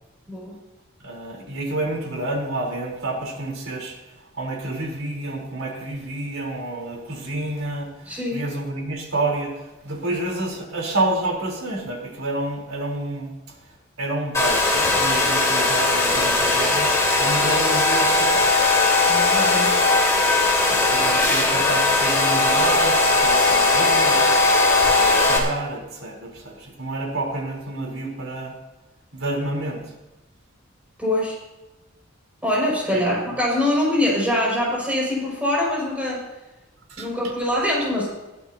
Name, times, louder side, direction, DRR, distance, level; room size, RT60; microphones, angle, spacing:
voice 1, 1.0-4.0 4.3-13.6 14.0-18.5 20.7-24.5 24.8-28.6 29.1-29.9 32.9-33.0 36.9-37.1, right 2 dB, 80° right, 0 dB, 4.0 m, -29 dB
voice 2, 8.1-8.5 19.1-19.9 31.0-31.4 32.4-36.2 37.0-38.1, left 1 dB, 5° right, -5 dB, 6.2 m, -23 dB
Domestic sounds home sounds, 14.3-25.4, left 3 dB, 15° left, 3.1 m, -19 dB
21.0 x 14.5 x 2.9 m, 1.1 s
head